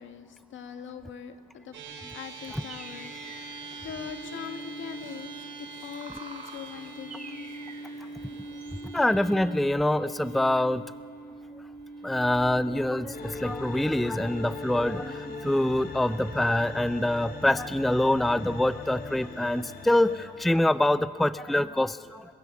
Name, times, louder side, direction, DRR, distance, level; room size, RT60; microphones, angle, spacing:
voice 1, 0.0-1.8 2.1-5.3 5.6-7.5, left 7 dB, 75° left, 7 dB, 1.8 m, -42 dB
sound 1, 1.7-20.3, right 2 dB, 70° right, 5.3 m, -44 dB
sound 2, 2.2-8.8, right 4 dB, 40° right, 2.9 m, -49 dB
voice 2, 8.8-10.8 12.0-22.2, left 1 dB, ahead, 14 dB, 0.5 m, -25 dB
sound 3, 13.1-20.3, left 4 dB, 50° left, 2.8 m, -40 dB
29.5 x 16.5 x 7.3 m, 2.3 s
cardioid pair, 90°, 20 cm